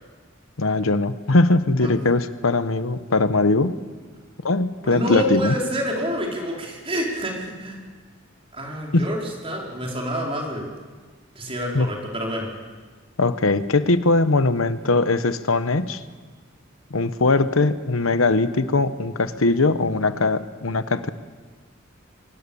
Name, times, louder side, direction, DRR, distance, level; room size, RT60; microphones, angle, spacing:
voice 1, 0.6-3.7 4.4-5.6 8.9-9.0 11.7-11.9 13.2-16.0 16.9-21.1, left 3 dB, 85° left, 12 dB, 1.1 m, -20 dB
voice 2, 4.8-7.8 8.5-9.2 9.4-10.6 11.3-12.5, equal, 30° right, -1 dB, 4.6 m, -27 dB
24.5 x 20.5 x 7.1 m, 1.4 s
head